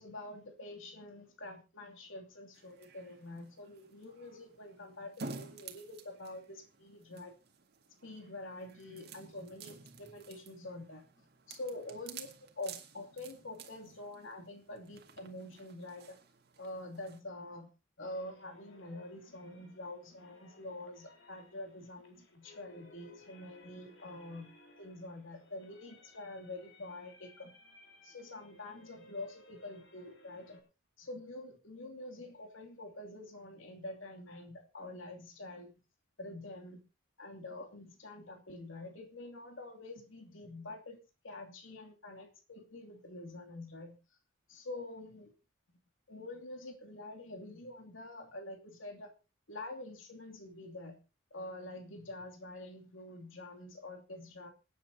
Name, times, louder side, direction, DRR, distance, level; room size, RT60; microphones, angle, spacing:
voice 1, 0.0-7.3 8.0-11.1 11.5-12.3 12.6-16.2 16.6-17.7 18.0-24.5 24.8-27.5 28.0-30.6 31.0-35.7 36.2-36.8 37.2-41.0 41.2-44.0 44.5-45.3 46.1-49.1 49.5-51.0 51.3-54.5, left 2 dB, 90° left, 2 dB, 2.8 m, -46 dB
sound 1, 2.5-17.2, right 4 dB, 55° right, 2.0 m, -52 dB
sound 2, 18.0-30.6, left 2 dB, 70° left, 4.3 m, -60 dB
26.5 x 9.5 x 2.8 m, 0.29 s
head